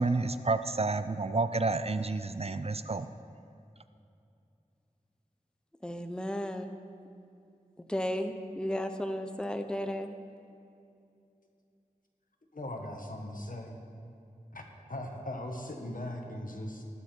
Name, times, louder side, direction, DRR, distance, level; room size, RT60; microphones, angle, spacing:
voice 1, 0.0-3.1, right 3 dB, 45° right, 11 dB, 0.4 m, -30 dB
voice 2, 5.8-6.7 7.9-10.1, equal, 5° left, 7 dB, 0.7 m, -34 dB
voice 3, 12.5-13.8 14.5-14.6 14.9-16.8, left 1 dB, 70° left, 2 dB, 1.5 m, -39 dB
19.0 x 7.2 x 4.5 m, 2.6 s
wide cardioid pair, 45°, 15 cm